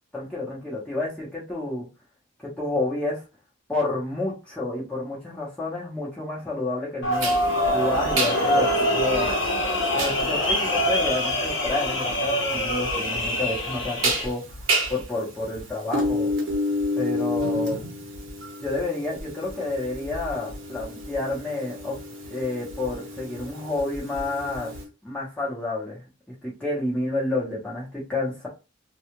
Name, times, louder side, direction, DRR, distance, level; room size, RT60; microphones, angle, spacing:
voice 1, 0.1-1.9 2.6-3.2 3.7-7.3 7.7-9.3 9.9-16.3 16.9-17.8 18.6-21.9 22.3-24.7 25.0-28.5, left 2 dB, 5° left, -7 dB, 0.9 m, -30 dB
sound 1, 7.0-14.2, equal, 65° left, 1.0 m, -24 dB
sound 2, 7.2-24.8, equal, 70° right, 0.9 m, -31 dB
2.4 x 2.4 x 2.9 m, 0.30 s
head